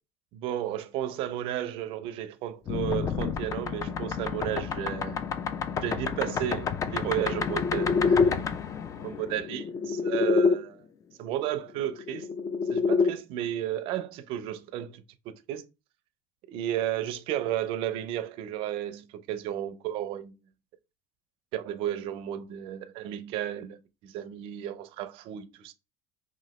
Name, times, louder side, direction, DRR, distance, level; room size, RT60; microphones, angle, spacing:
voice 1, 0.3-5.2 5.8-8.5 9.0-10.8 11.2-12.3 12.7-15.6 16.5-20.3 21.5-25.7, right 12 dB, 60° right, 0.4 m, -33 dB
sound 1, 2.7-10.6 11.9-13.1, left 5 dB, 30° left, 0.3 m, -28 dB
2.9 x 2.5 x 2.9 m
supercardioid pair, 110°, 10 cm